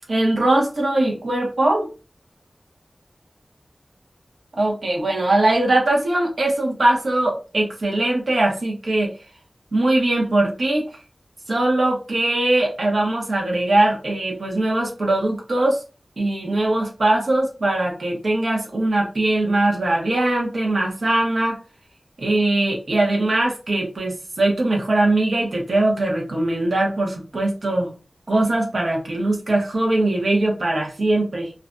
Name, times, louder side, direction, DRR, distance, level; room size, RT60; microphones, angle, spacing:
voice 1, 0.1-1.9 4.6-9.2 9.7-10.9 11.5-15.8 16.2-21.6 22.2-27.9 28.3-31.5, right 2 dB, 80° right, 0 dB, 0.8 m, -21 dB
2.4 x 2.1 x 2.5 m, 0.32 s
wide cardioid pair, 70°, 0 cm